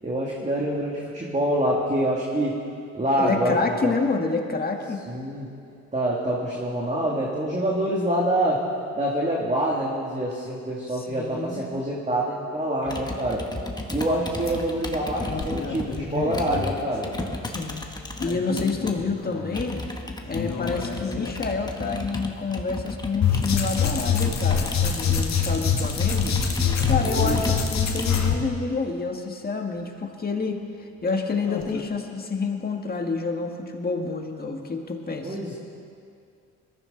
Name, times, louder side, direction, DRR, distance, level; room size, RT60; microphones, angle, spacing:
voice 1, 0.0-2.6 2.9-3.9 5.1-5.5 5.9-8.6 8.9-13.4 13.9-17.1 27.0-27.4 35.2-35.5, right 1 dB, 25° right, -4 dB, 2.5 m, -26 dB
voice 2, 3.2-5.0 10.9-11.6 17.4-17.9 18.2-19.8 20.3-26.4 26.9-35.4, left 4 dB, 30° left, 2 dB, 1.9 m, -28 dB
Computer keyboard, 12.9-19.0 19.5-28.3, left 2 dB, 15° left, 1.5 m, -34 dB
sound 1, 14.2-14.3 14.5-14.6 15.3-17.4 18.2-19.6 20.2-21.4 23.2-28.3 31.4-31.8, left 6 dB, 65° left, 1.9 m, -25 dB
21.0 x 14.0 x 4.0 m, 2.5 s
cardioid pair, 90°, 30 cm